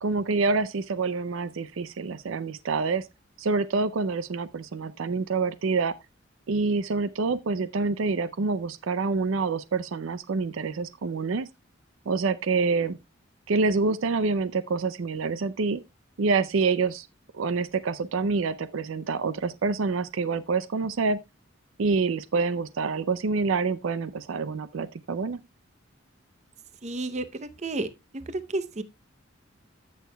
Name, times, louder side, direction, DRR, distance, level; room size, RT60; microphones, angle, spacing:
voice 1, 0.0-3.1 3.4-5.9 6.5-11.5 12.1-13.0 13.5-15.8 16.2-17.1 17.3-21.2 21.8-25.4, right 4 dB, 75° right, 0.5 m, -27 dB
voice 2, 26.8-27.9 28.3-28.8, right 2 dB, 35° right, 0.7 m, -31 dB
14.5 x 6.5 x 2.2 m
head